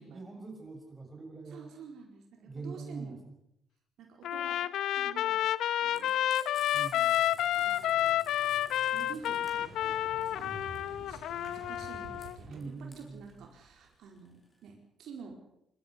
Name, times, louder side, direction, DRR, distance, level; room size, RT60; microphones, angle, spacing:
voice 1, 0.0-1.7 2.4-3.3 6.7-7.3 12.5-13.5, right 3 dB, 20° right, 3 dB, 6.6 m, -44 dB
voice 2, 1.5-3.1 4.0-4.6 4.9-5.4 5.8-6.1 7.5-8.2 8.9-15.4, right 5 dB, 75° right, 2 dB, 4.6 m, -49 dB
Trumpet, 4.2-12.4, left 12 dB, 80° left, 0.8 m, -30 dB
Frying (food), 5.9-14.7, left 2 dB, 25° left, 6.5 m, -55 dB
Motorcycle, 7.2-13.9, right 3 dB, 55° right, 4.9 m, -51 dB
24.0 x 13.5 x 8.2 m, 0.79 s
cardioid pair, 90°, 0 cm